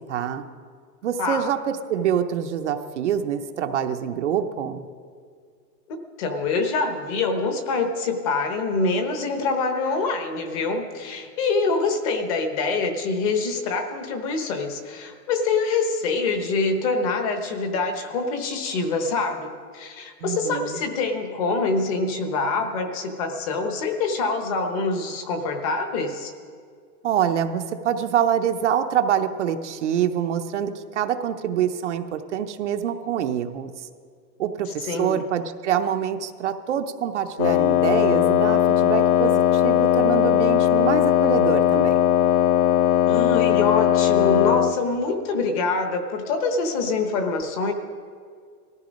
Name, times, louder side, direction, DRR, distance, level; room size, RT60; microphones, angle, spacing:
voice 1, 0.1-0.4 1.0-4.8 20.2-20.8 27.0-33.9 34.4-41.9, right 9 dB, 45° right, 7 dB, 0.7 m, -25 dB
voice 2, 1.2-1.5 6.2-26.3 34.8-35.2 43.1-47.7, left 3 dB, 20° left, 6 dB, 0.9 m, -25 dB
Wind instrument woodwind instrument, 37.4-44.8, left 10 dB, 60° left, 0.7 m, -19 dB
18.5 x 14.0 x 5.2 m, 2.1 s
supercardioid pair, 175°, 49 cm